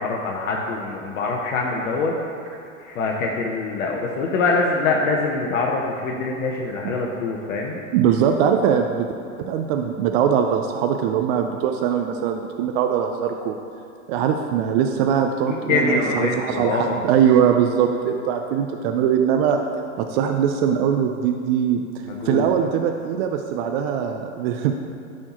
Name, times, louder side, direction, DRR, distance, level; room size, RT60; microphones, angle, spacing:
voice 1, 0.0-2.1 2.8-7.8 15.5-17.0 22.1-22.5, left 3 dB, 70° left, -1 dB, 0.9 m, -24 dB
voice 2, 7.9-9.1 9.4-13.6 14.1-19.6 20.0-21.8 22.2-24.7, right 8 dB, 45° right, 4 dB, 0.5 m, -21 dB
12.0 x 4.2 x 3.0 m, 2.7 s
hypercardioid pair, 115°, 41 cm